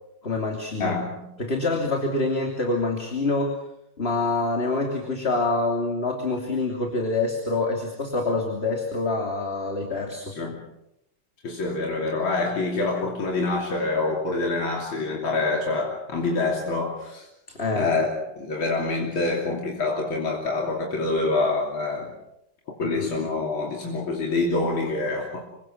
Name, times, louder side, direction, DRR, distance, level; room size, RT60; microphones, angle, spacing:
voice 1, 0.2-1.0 1.4-3.5 4.0-10.3 17.5-17.9 22.8-23.1, left 2 dB, 30° left, 1 dB, 3.2 m, -26 dB
voice 2, 0.8-1.3 10.4-10.6 11.4-17.3 17.7-18.1 18.4-22.1 22.8-25.4, left 3 dB, 80° left, -1 dB, 3.8 m, -26 dB
27.0 x 24.0 x 6.2 m, 0.83 s
omnidirectional pair, 2.2 m